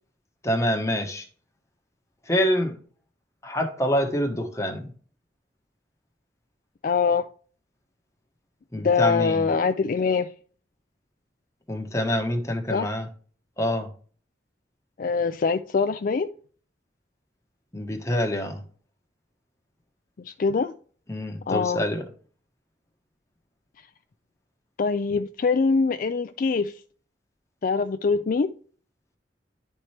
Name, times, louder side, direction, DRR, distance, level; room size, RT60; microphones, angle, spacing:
voice 1, 0.4-1.3 2.3-2.8 3.4-4.9 8.7-9.5 11.7-13.1 13.6-13.9 17.7-18.6 21.1-22.0, equal, 15° left, 1.1 m, -26 dB
voice 2, 6.8-7.3 8.8-10.3 12.7-12.9 15.0-16.3 20.2-20.7 21.5-21.8 24.8-26.8 27.6-28.5, left 5 dB, 50° left, 0.4 m, -23 dB
11.0 x 4.3 x 3.2 m
head